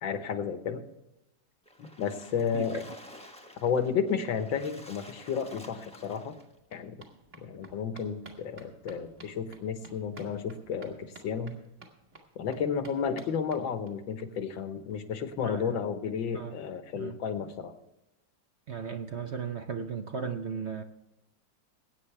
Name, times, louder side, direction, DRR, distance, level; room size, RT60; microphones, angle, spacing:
voice 1, 0.0-0.9 1.8-2.8 3.6-6.4 6.7-7.0 7.4-11.6 12.4-17.7, left 6 dB, 80° left, 8 dB, 1.9 m, -32 dB
Splash splatter, 1.7-6.5, left 1 dB, 5° left, 0.8 m, -51 dB
sound 1, 5.8-14.2 14.6-14.7 14.9-15.0 15.3-15.4, right 2 dB, 35° right, 2.6 m, -54 dB
voice 2, 15.4-15.8 16.3-16.6 16.9-17.2 18.7-20.8, right 6 dB, 55° right, 6 dB, 0.8 m, -36 dB
21.5 x 9.3 x 3.4 m, 0.93 s
omnidirectional pair, 2.1 m